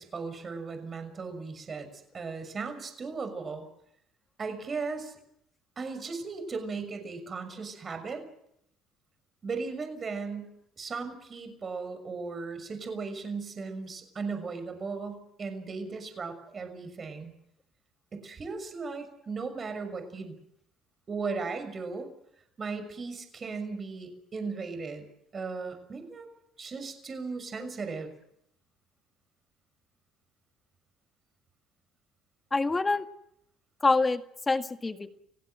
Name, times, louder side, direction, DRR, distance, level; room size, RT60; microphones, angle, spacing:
voice 1, 0.0-3.6 4.4-5.1 5.8-8.2 9.4-17.3 18.1-20.4 21.1-22.1 22.6-25.1 25.3-26.3 26.6-28.1, right 4 dB, 35° right, 8 dB, 6.3 m, -37 dB
voice 2, 32.5-33.0 33.8-35.2, left 3 dB, 20° left, 8 dB, 1.8 m, -26 dB
30.0 x 16.5 x 7.9 m, 0.74 s
supercardioid pair, 90°, 0 cm